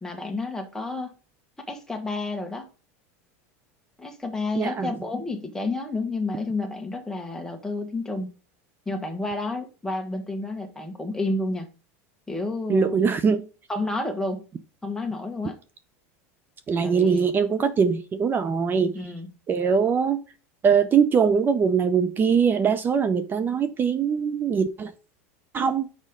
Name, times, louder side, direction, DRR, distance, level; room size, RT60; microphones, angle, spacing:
voice 1, 0.0-1.1 1.7-2.7 4.0-8.3 8.8-11.7 12.3-13.0 13.7-14.4 14.8-15.6 16.8-17.3 18.9-19.3, left 2 dB, 5° left, 1.5 m, -30 dB
voice 2, 4.6-4.9 12.7-13.4 16.7-18.9 19.5-20.2 20.6-24.9 25.5-25.9, right 6 dB, 25° right, 0.6 m, -22 dB
6.5 x 5.1 x 3.7 m
supercardioid pair, 120°, 8 cm